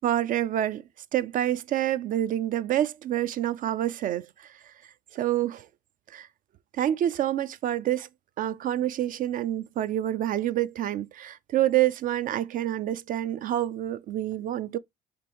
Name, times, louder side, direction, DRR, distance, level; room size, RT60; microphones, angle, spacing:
voice 1, 0.0-0.8 1.1-4.3 5.1-5.7 6.1-6.3 6.8-8.1 8.4-14.8, right 12 dB, 55° right, 0.4 m, -27 dB
5.1 x 3.4 x 2.9 m
cardioid pair, 110°, 17 cm